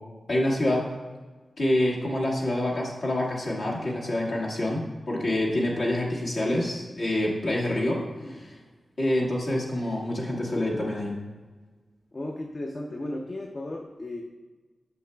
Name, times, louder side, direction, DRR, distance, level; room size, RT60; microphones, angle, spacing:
voice 1, 0.3-0.9 1.6-8.5 9.0-11.1, left 1 dB, 65° left, -4 dB, 1.6 m, -27 dB
voice 2, 8.2-8.6 12.1-14.2, left 1 dB, 35° left, 1 dB, 0.5 m, -35 dB
6.8 x 6.4 x 2.2 m, 1.3 s
wide cardioid pair, 90°, 0 cm